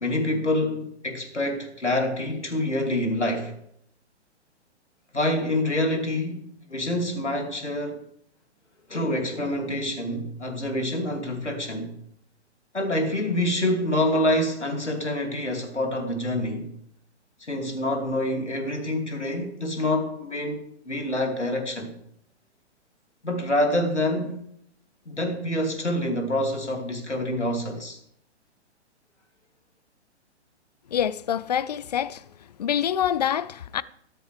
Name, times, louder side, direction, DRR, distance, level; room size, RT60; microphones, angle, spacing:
voice 1, 0.0-3.5 5.1-8.0 8.9-11.9 12.7-16.7 17.5-20.6 20.9-21.9 23.2-24.3 25.1-28.0, left 1 dB, 80° left, 2.7 m, -26 dB
voice 2, 30.9-32.3 32.6-33.8, left 9 dB, 40° left, 0.5 m, -26 dB
13.0 x 13.0 x 3.3 m
figure-of-eight pair, 120°, 34 cm